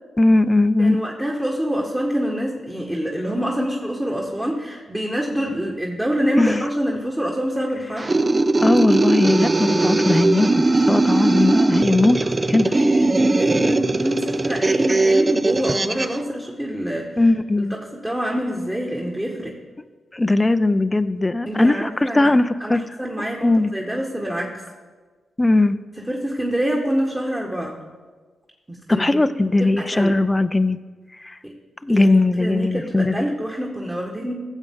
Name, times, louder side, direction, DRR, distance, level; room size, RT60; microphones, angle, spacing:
voice 1, 0.2-1.0 6.4-6.6 8.6-12.7 17.2-17.7 20.1-22.8 23.4-23.7 25.4-25.8 28.9-30.8 31.2-31.4 31.8-33.1, left 2 dB, 25° left, 11 dB, 0.5 m, -19 dB
voice 2, 0.8-8.2 11.2-11.3 12.6-17.2 17.6-19.6 21.5-22.3 22.6-24.6 26.0-27.8 28.7-29.1 29.6-30.2 31.4-31.5 31.9-34.3, equal, 15° right, -1 dB, 1.7 m, -26 dB
sound 1, 8.0-16.2, right 2 dB, 35° right, 0.5 m, -19 dB
15.5 x 7.3 x 3.9 m, 1.4 s
supercardioid pair, 40°, 0 cm